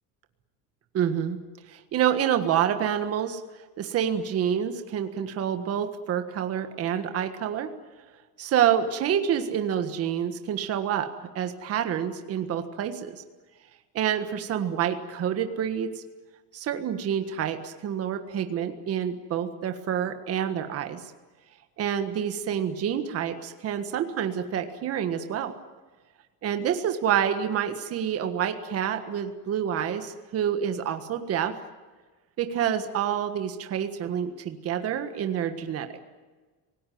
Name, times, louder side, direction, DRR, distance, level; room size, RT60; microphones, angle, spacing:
voice 1, 0.9-1.4 1.7-3.4 3.8-7.7 8.4-11.1 11.4-13.2 13.9-15.9 16.5-21.0 21.8-25.5 26.4-31.5 32.4-35.9, right 9 dB, 35° right, 7 dB, 1.6 m, -27 dB
26.5 x 18.5 x 9.4 m, 1.3 s
cardioid pair, 165°, 40 cm